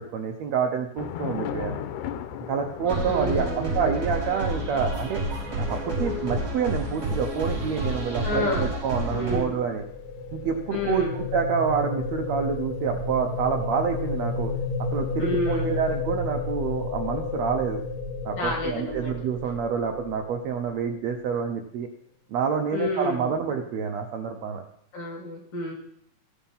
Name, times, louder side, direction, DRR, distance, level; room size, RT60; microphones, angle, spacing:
voice 1, 0.0-1.8 2.5-5.2 5.6-9.8 10.3-14.5 14.9-17.8 18.3-21.9 22.3-24.6, right 6 dB, 70° right, 5 dB, 1.8 m, -27 dB
Thunder / Rain, 1.0-13.5, left 9 dB, 85° left, 2.3 m, -40 dB
sound 1, 2.9-9.4, right 1 dB, 25° right, 5.7 m, -29 dB
voice 2, 3.1-3.9 8.2-8.7 9.1-9.5 10.7-11.2 15.2-15.8 18.4-19.1 22.7-23.3 24.9-25.7, left 2 dB, 45° left, 0 dB, 3.6 m, -30 dB
sound 2, 9.2-21.2, left 4 dB, 30° left, 0.7 m, -32 dB
15.0 x 7.2 x 5.5 m, 0.67 s
omnidirectional pair, 3.7 m